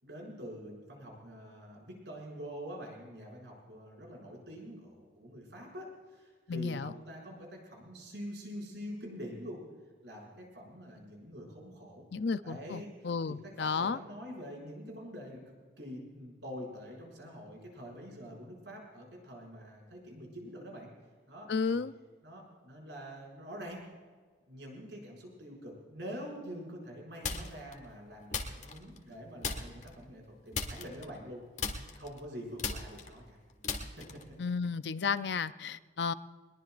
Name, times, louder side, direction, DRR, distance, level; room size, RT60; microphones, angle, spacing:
voice 1, 0.0-9.6 10.0-12.1 12.4-13.1 13.6-20.9 21.3-21.8 22.2-23.8 24.5-31.4 31.9-33.4, equal, 70° right, -1 dB, 6.3 m, -45 dB
voice 2, 6.5-6.9 12.1-14.0 21.5-21.9 34.4-36.1, left 5 dB, 70° left, 13 dB, 0.5 m, -33 dB
sound 1, 27.2-27.7 28.3-29.1 29.4-29.9 30.5-31.3 31.6-34.4, left 4 dB, 40° left, 1.7 m, -37 dB
22.0 x 21.5 x 2.5 m, 1.5 s
head